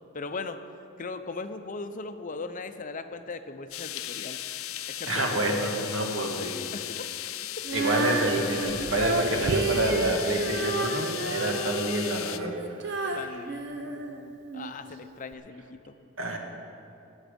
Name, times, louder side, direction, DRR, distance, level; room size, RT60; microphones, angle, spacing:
voice 1, 0.1-0.6 1.0-4.4 4.9-5.5 6.7-7.0 11.4-11.6 13.1-15.9, left 3 dB, 40° left, 8 dB, 0.7 m, -39 dB
sound 1, 3.7-12.4, left 13 dB, 90° left, 0.5 m, -36 dB
voice 2, 5.1-6.6 7.7-12.6 12.9-13.4 16.2-16.4, right 1 dB, 80° right, 2 dB, 1.6 m, -28 dB
Female singing, 7.6-14.7 15.3-15.4, right 2 dB, 60° right, 0.9 m, -31 dB
20.0 x 7.3 x 5.2 m, 2.7 s
head